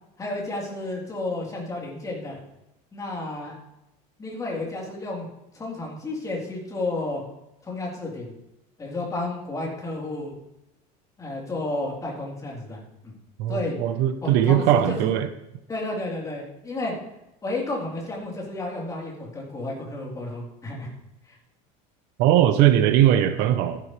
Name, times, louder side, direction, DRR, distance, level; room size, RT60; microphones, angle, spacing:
voice 1, 0.2-2.4 2.9-3.6 4.2-5.3 5.5-7.2 7.6-8.3 8.8-10.4 11.2-13.1 13.5-13.8 14.2-15.1 15.7-16.9 17.4-20.9 21.3-21.4, left 2 dB, 20° left, -3 dB, 3.9 m, -31 dB
voice 2, 13.4-15.3 22.2-23.8, right 11 dB, 70° right, 9 dB, 1.1 m, -20 dB
14.5 x 11.0 x 3.4 m, 0.90 s
cardioid pair, 140°, 18 cm